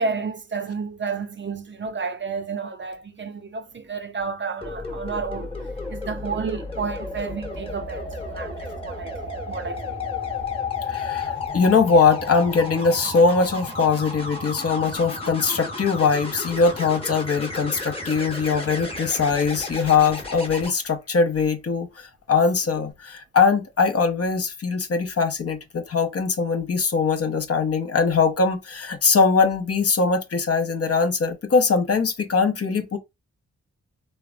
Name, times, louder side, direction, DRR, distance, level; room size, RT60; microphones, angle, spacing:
voice 1, 0.0-5.6 5.9-9.2 9.5-10.0, right 5 dB, 35° right, 0.5 m, -31 dB
sound 1, 4.6-20.7 22.6-22.9, left 3 dB, 20° left, 1.0 m, -33 dB
voice 2, 10.9-33.0, left 5 dB, 50° left, 0.7 m, -21 dB
3.3 x 2.1 x 2.5 m
cardioid pair, 45°, 32 cm